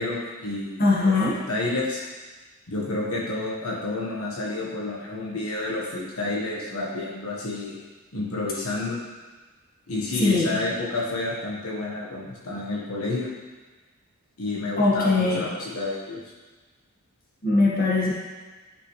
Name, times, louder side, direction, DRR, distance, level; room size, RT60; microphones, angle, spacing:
voice 1, 0.0-2.0 2.7-7.8 8.1-9.0 9.9-13.3 14.4-16.2, left 2 dB, 75° left, -4 dB, 1.5 m, -30 dB
voice 2, 0.8-1.3 10.2-10.5 14.8-15.4 17.4-18.1, left 3 dB, 40° left, -6 dB, 1.9 m, -21 dB
11.5 x 6.0 x 3.3 m, 1.3 s
head